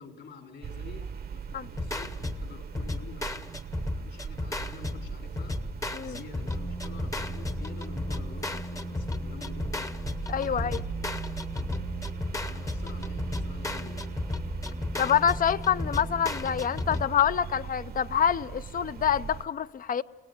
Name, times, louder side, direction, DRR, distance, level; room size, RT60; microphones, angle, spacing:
voice 1, 0.0-3.7 3.9-5.6 6.0-10.0 10.5-10.7 12.5-14.1, left 4 dB, 65° left, 3.4 m, -48 dB
sound 1, 0.6-19.5, right 7 dB, 50° right, 0.9 m, -40 dB
sound 2, 1.8-17.1, left 2 dB, 15° left, 0.9 m, -34 dB
voice 2, 10.3-10.8 15.0-20.0, left 8 dB, 45° left, 0.6 m, -26 dB
29.5 x 17.5 x 6.5 m
cardioid pair, 90°, 20 cm